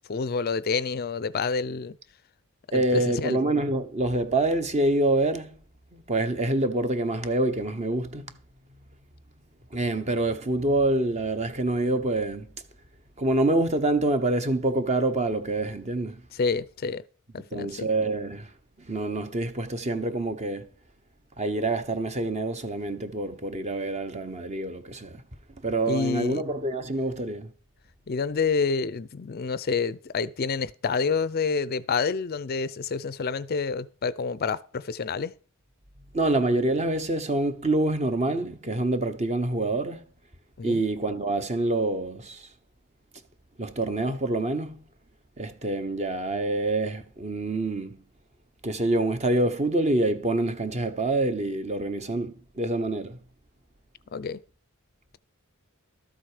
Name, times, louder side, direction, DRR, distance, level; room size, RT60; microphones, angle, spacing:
voice 1, 0.1-2.0 2.7-3.4 16.3-17.0 17.3-17.9 25.9-26.4 28.1-35.3 40.6-40.8 54.1-54.4, left 5 dB, 45° left, 0.5 m, -28 dB
voice 2, 2.7-5.6 5.9-8.3 9.7-12.5 13.2-16.2 17.5-18.5 18.8-20.7 21.4-25.2 25.6-27.5 36.1-40.0 40.6-42.5 43.6-44.8 45.4-48.0 48.6-53.2, right 2 dB, 30° right, 1.0 m, -26 dB
13.0 x 7.6 x 4.9 m
head